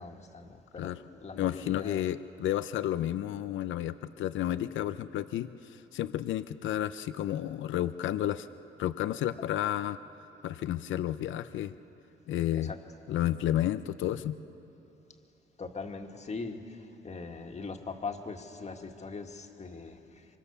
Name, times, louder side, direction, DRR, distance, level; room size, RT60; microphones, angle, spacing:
voice 1, 0.0-2.1 12.5-12.8 15.6-20.3, left 4 dB, 35° left, 4 dB, 1.9 m, -41 dB
voice 2, 1.4-8.5 8.8-10.0 10.4-11.7 12.3-12.7 13.1-14.4, left 12 dB, 75° left, 13 dB, 0.6 m, -31 dB
24.5 x 24.0 x 7.0 m, 2.9 s
cardioid pair, 90°, 20 cm